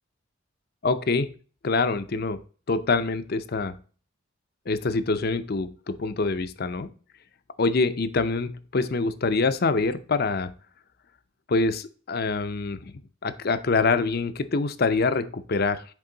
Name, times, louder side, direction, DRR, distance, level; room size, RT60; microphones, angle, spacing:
voice 1, 0.8-1.3 1.6-2.4 2.7-3.8 4.7-6.9 7.6-10.5 11.5-12.9 13.2-15.8, left 3 dB, 50° left, 11 dB, 0.6 m, -25 dB
8.2 x 3.6 x 3.8 m, 0.39 s
head